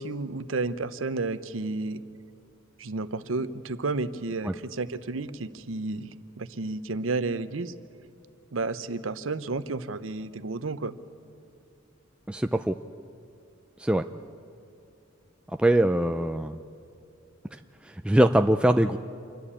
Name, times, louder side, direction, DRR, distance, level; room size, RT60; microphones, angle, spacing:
voice 1, 0.0-2.0 2.8-7.7 8.5-10.9, right 3 dB, 85° right, 12 dB, 0.8 m, -31 dB
voice 2, 12.3-12.8 13.8-14.1 15.6-16.6 17.8-19.0, right 1 dB, 5° right, 7 dB, 0.4 m, -22 dB
28.0 x 11.5 x 8.4 m, 2.7 s
head